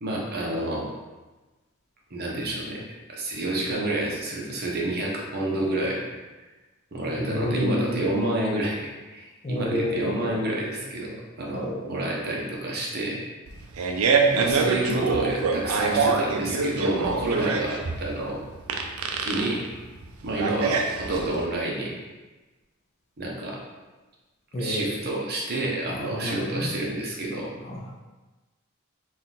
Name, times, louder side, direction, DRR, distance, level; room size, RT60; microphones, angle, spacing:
voice 1, 0.0-0.8 2.1-2.8 3.1-6.0 6.9-13.2 13.9-18.4 19.2-19.6 20.2-21.9 23.2-23.6 24.6-27.5, right 1 dB, 50° right, -3 dB, 0.8 m, -29 dB
voice 2, 7.2-8.1 9.4-10.5 11.6-12.1 14.2-14.6 24.5-25.0 25.9-26.7 27.7-28.0, left 1 dB, 30° left, -1 dB, 0.5 m, -30 dB
Fart, 13.5-21.4, right 4 dB, 75° right, 0.4 m, -25 dB
3.7 x 2.4 x 4.1 m, 1.2 s
head